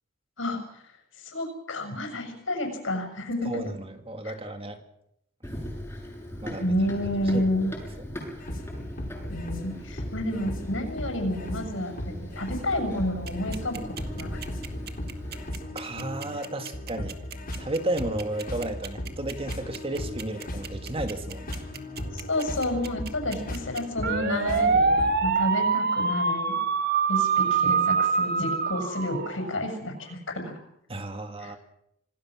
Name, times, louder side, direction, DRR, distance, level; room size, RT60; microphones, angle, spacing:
voice 1, 0.4-0.8 1.2-3.7 4.2-4.3 6.6-7.7 9.3-13.8 14.2-14.4 22.1-26.6 27.1-30.6 31.4-31.5, left 1 dB, 75° left, 5 dB, 6.5 m, -30 dB
voice 2, 3.4-4.8 6.4-6.7 7.3-7.4 15.7-17.2 17.6-21.6 30.9-31.6, right 2 dB, 30° right, 6 dB, 2.0 m, -33 dB
Run, 5.4-15.5, equal, 10° left, 6.5 m, -40 dB
sound 1, 8.4-25.3, left 1 dB, 45° left, 5.3 m, -37 dB
sound 2, 13.3-29.7, right 5 dB, 55° right, 1.8 m, -25 dB
26.5 x 19.0 x 6.3 m, 0.75 s
head